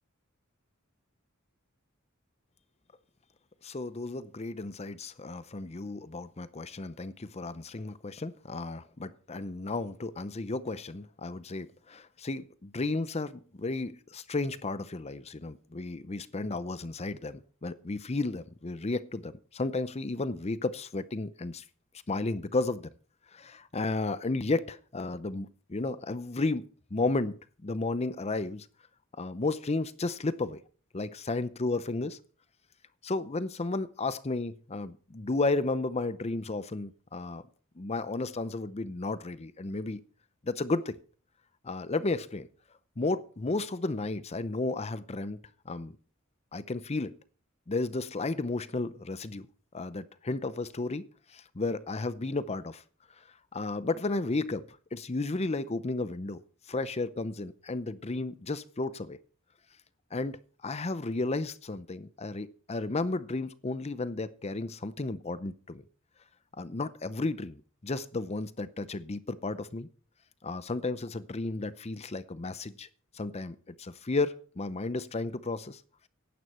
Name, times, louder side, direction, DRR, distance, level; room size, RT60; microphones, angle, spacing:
voice 1, 3.6-21.6 22.1-22.9 23.3-28.7 29.2-30.6 30.9-32.2 33.0-37.4 37.8-40.0 40.4-41.0 41.6-42.5 43.0-45.4 45.7-45.9 46.5-47.2 47.7-49.5 49.7-51.1 51.3-52.8 53.5-56.4 56.7-59.2 60.1-60.4 60.6-65.8 66.6-69.9 70.4-72.9 73.1-75.8, left 3 dB, 30° left, 0.7 m, -33 dB
15.5 x 11.5 x 4.3 m
head